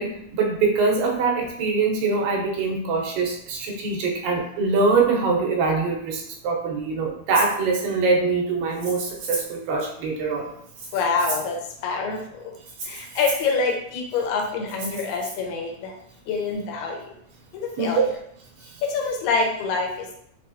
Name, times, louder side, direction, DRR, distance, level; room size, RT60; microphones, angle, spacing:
voice 1, 0.0-10.5 17.8-18.1, right 4 dB, 85° right, 0 dB, 2.5 m, -23 dB
Rattle (instrument), 7.3-7.6 8.7-9.6 10.7-11.6 12.7-13.5 14.7-15.3, right 2 dB, 60° right, 2.4 m, -34 dB
voice 2, 10.9-11.6 11.8-12.2 12.9-15.9 16.3-17.0 17.5-18.1 18.8-20.2, left 4 dB, 80° left, 1 dB, 1.7 m, -25 dB
5.6 x 2.2 x 2.6 m, 0.70 s
omnidirectional pair, 4.0 m